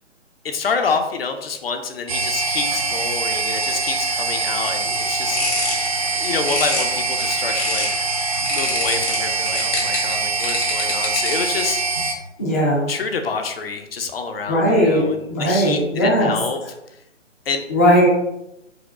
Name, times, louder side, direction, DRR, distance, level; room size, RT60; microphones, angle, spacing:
voice 1, 0.4-5.7 6.2-7.9 8.5-12.0 12.9-16.6 17.5-17.6, left 5 dB, 50° left, 6 dB, 0.7 m, -27 dB
sound 1, 2.1-12.1, right 3 dB, 30° right, 0.6 m, -23 dB
sound 2, 5.0-8.0 8.5-11.6, left 2 dB, 75° left, 1.8 m, -28 dB
voice 2, 12.4-12.8 14.5-16.3 17.7-18.1, equal, 15° left, -6 dB, 0.4 m, -17 dB
4.9 x 2.3 x 4.8 m, 0.84 s
figure-of-eight pair, 145°, 37 cm